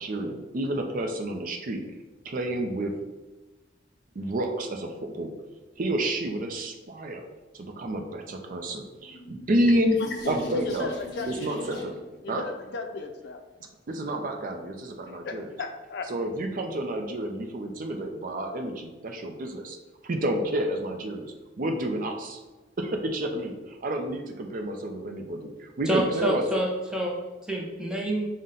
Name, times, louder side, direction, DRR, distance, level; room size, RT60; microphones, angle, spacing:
voice 1, 0.0-1.8 2.2-3.0 4.2-5.3 5.8-7.2 7.5-10.0 10.3-10.9 11.3-11.9 12.3-12.4 13.9-15.5 16.1-19.8 20.0-22.4 22.8-26.4, right 1 dB, 45° right, 4 dB, 0.5 m, -29 dB
sound 1, 8.9-12.1, equal, 25° left, 1.1 m, -40 dB
voice 2, 10.0-11.8 12.2-13.4 15.1-16.1, left 3 dB, 60° left, 6 dB, 0.4 m, -36 dB
voice 3, 25.9-27.2 27.5-28.3, right 1 dB, 5° right, -2 dB, 0.7 m, -27 dB
5.5 x 2.1 x 3.7 m, 1.2 s
head